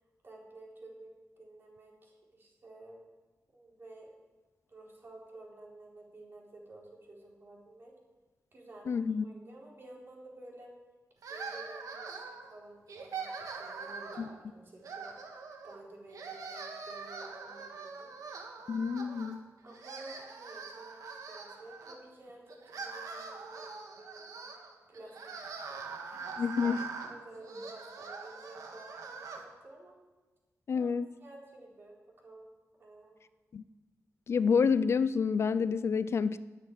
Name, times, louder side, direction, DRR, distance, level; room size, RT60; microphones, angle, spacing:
voice 1, 0.2-1.1 1.4-3.0 3.5-4.1 4.7-7.9 8.5-9.0 9.2-10.7 11.3-15.2 15.6-18.1 19.6-24.5 24.9-30.0 30.7-30.9 31.2-32.5 32.8-33.2, right 2 dB, 40° right, -2 dB, 4.0 m, -52 dB
voice 2, 8.9-9.2 14.2-14.3 18.7-19.4 26.4-26.8 30.7-31.1 33.5-33.6 34.3-36.4, left 6 dB, 50° left, 15 dB, 0.4 m, -28 dB
sound 1, 11.2-12.5 12.9-14.4 14.8-15.8 16.1-19.4 19.7-22.0 22.5-29.4, right 5 dB, 80° right, 1.8 m, -43 dB
11.0 x 9.2 x 9.3 m, 1.2 s
wide cardioid pair, 160°, 6 cm